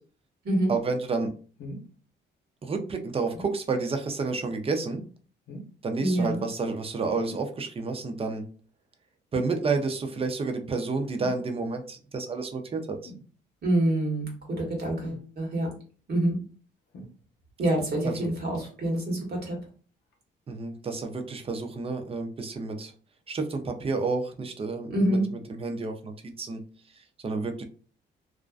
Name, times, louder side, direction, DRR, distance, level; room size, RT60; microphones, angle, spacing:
voice 1, 0.7-1.3 2.6-5.0 5.8-8.5 9.3-13.1 18.0-18.3 20.5-22.9 23.3-26.6 26.9-27.6, right 3 dB, 30° right, 5 dB, 0.5 m, -30 dB
sound 1, 1.6-1.9 3.3-3.6 5.5-5.8 7.3-7.5 9.3-9.6 11.2-11.5 13.0-13.3 15.0-15.3 16.9-17.5 19.0-19.3 20.1-20.2, equal, 65° left, 0.7 m, -42 dB
voice 2, 6.0-6.4 13.6-14.3 14.6-15.7 16.1-16.4 17.6-19.6 24.9-25.2, right 1 dB, 55° right, 0 dB, 1.2 m, -26 dB
2.5 x 2.1 x 2.3 m, 0.40 s
cardioid pair, 90°, 20 cm